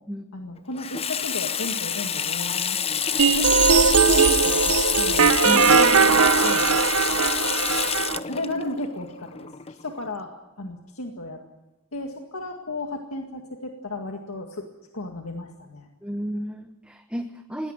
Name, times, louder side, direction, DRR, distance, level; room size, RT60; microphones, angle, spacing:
voice 1, 0.3-6.7 8.3-11.4 11.9-14.7 14.9-15.9, left 2 dB, 80° left, 3 dB, 2.0 m, -34 dB
Water tap faucet / Sink (filling or washing), 0.8-10.1, left 8 dB, 30° left, 0.7 m, -27 dB
sound 1, 3.2-8.2, right 6 dB, 80° right, 0.9 m, -19 dB
voice 2, 16.0-17.7, equal, 5° right, 6 dB, 1.1 m, -31 dB
21.5 x 17.5 x 9.0 m, 0.96 s
head